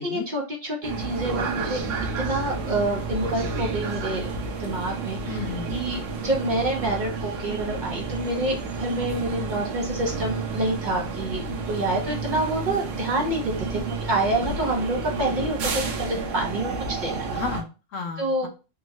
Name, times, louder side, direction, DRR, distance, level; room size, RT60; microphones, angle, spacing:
voice 1, 0.0-1.8 2.2-4.3 4.6-5.2 5.7-17.3 18.2-18.5, right 1 dB, 45° right, 0 dB, 0.8 m, -27 dB
sound 1, 0.8-17.6, right 4 dB, 80° right, 1.0 m, -31 dB
voice 2, 5.3-5.9 17.3-18.5, left 4 dB, 85° left, 4 dB, 1.1 m, -33 dB
3.5 x 2.2 x 2.9 m, 0.31 s
omnidirectional pair, 1.3 m